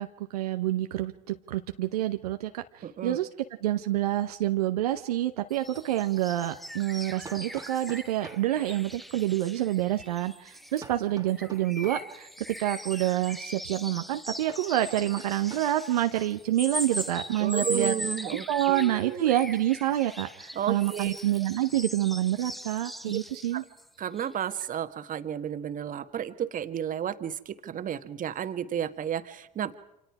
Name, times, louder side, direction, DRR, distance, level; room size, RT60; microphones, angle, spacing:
voice 1, 0.0-3.3 3.6-12.3 12.6-17.9 18.5-23.6, right 13 dB, 85° right, 7 dB, 0.8 m, -27 dB
voice 2, 2.8-3.2 17.4-19.3 20.5-21.2 23.1-23.2 23.5-23.6 24.0-29.7, right 9 dB, 45° right, 10 dB, 1.5 m, -32 dB
sound 1, 5.5-11.0 11.3-23.9 24.1-24.3 24.6-24.7, equal, ahead, 0.9 m, -40 dB
Hammer, 5.6-5.7 7.2-8.5 10.8-12.1 14.5-15.8, right 4 dB, 20° right, 1.5 m, -47 dB
28.0 x 26.5 x 4.8 m, 0.86 s
hypercardioid pair, 65°, 19 cm